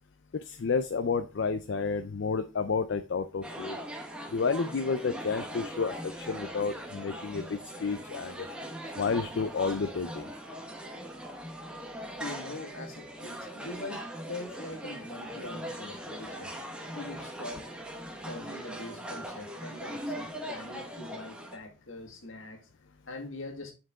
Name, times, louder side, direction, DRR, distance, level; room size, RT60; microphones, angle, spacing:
voice 1, 0.5-3.8 4.3-8.5 9.0-10.2, left 5 dB, 60° left, 0.4 m, -30 dB
sound 1, 3.4-21.6, equal, 5° right, 0.9 m, -40 dB
voice 2, 12.2-16.5 16.9-17.7 17.9-22.7 23.1-23.7, left 2 dB, 75° left, 1.7 m, -43 dB
9.1 x 4.5 x 3.6 m
head